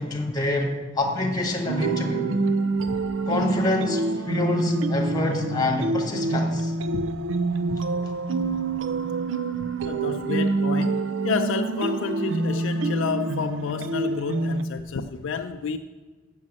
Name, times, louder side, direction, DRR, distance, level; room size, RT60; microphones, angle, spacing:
voice 1, 0.0-2.3 3.3-6.7, left 2 dB, 20° left, 1 dB, 1.7 m, -26 dB
sound 1, 1.7-14.6, right 3 dB, 75° right, 0.5 m, -26 dB
voice 2, 9.8-15.8, left 5 dB, 80° left, 6 dB, 0.4 m, -30 dB
7.4 x 6.5 x 7.5 m, 1.4 s
head